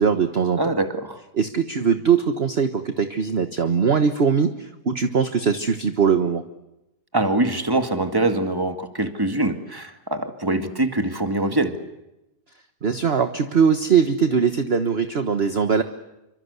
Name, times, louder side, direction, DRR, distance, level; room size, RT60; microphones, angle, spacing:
voice 1, 0.0-0.6 1.3-6.4 12.8-15.8, right 6 dB, 40° right, 8 dB, 1.4 m, -21 dB
voice 2, 0.6-1.2 7.1-11.7, right 2 dB, 15° right, 7 dB, 2.1 m, -23 dB
28.5 x 25.0 x 8.3 m, 0.91 s
omnidirectional pair, 1.8 m